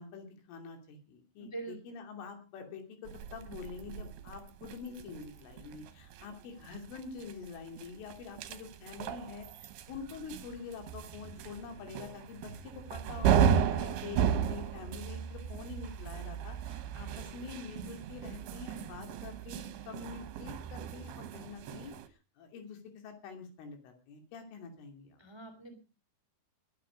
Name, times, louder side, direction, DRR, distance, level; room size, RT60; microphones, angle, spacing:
voice 1, 0.0-25.2, left 5 dB, 80° left, 5 dB, 5.4 m, -46 dB
voice 2, 1.4-1.8 25.2-25.8, right 3 dB, 15° right, 7 dB, 0.9 m, -43 dB
sound 1, 3.1-22.1, right 8 dB, 70° right, 2.7 m, -35 dB
21.0 x 9.4 x 5.1 m, 0.34 s
omnidirectional pair, 5.6 m